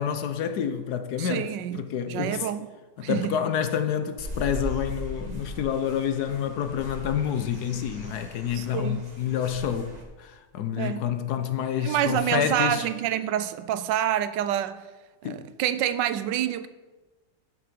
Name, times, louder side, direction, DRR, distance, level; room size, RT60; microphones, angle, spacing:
voice 1, 0.0-2.5 3.0-12.9 15.2-15.4, left 8 dB, 70° left, 1.2 m, -28 dB
voice 2, 1.2-1.8 2.1-2.7 3.0-3.4 8.5-9.0 10.8-11.0 11.8-14.8 15.2-16.7, right 11 dB, 85° right, 1.3 m, -27 dB
sound 1, 4.2-10.0, equal, 25° right, 1.9 m, -39 dB
11.5 x 7.1 x 5.2 m
omnidirectional pair, 1.9 m